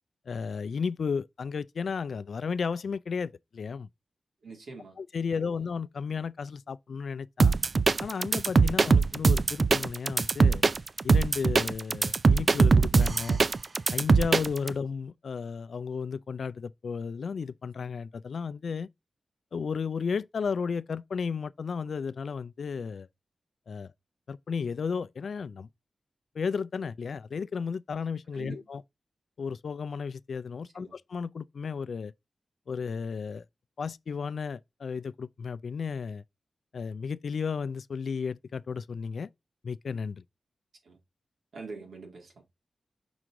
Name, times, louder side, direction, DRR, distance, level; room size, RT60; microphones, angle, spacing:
voice 1, 0.3-3.9 5.0-7.5 8.0-10.6 11.0-13.4 13.9-18.9 19.5-23.1 23.7-23.9 24.3-25.7 26.3-28.8 29.4-32.1 32.7-33.4 33.8-36.2 36.7-39.3 39.6-40.2, left 5 dB, 75° left, 0.4 m, -33 dB
voice 2, 4.4-5.0 5.3-5.6 8.8-9.0 28.3-28.7 30.6-30.9 40.8-41.0 41.5-42.4, right 4 dB, 85° right, 2.3 m, -45 dB
sound 1, 7.4-14.7, right 4 dB, 50° right, 0.4 m, -22 dB
6.1 x 4.6 x 3.6 m
wide cardioid pair, 80°, 0 cm